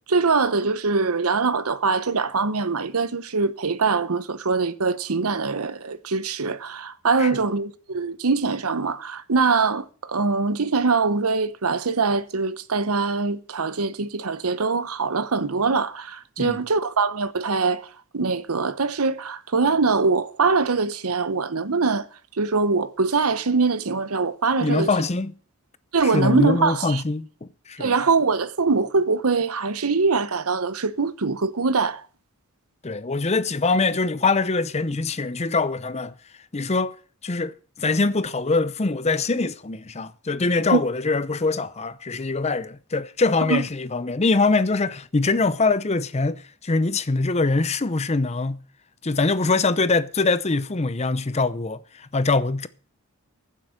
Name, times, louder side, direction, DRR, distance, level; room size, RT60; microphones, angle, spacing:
voice 1, 0.1-17.9 18.1-22.1 22.4-24.9 25.9-27.0 27.8-32.0 40.7-40.8 43.5-43.6, right 4 dB, 90° right, 0.9 m, -23 dB
voice 2, 24.6-25.3 26.0-28.0 32.8-36.1 36.5-37.0 37.2-48.6 49.0-52.7, left 3 dB, 30° left, 0.7 m, -23 dB
15.0 x 7.6 x 6.5 m
head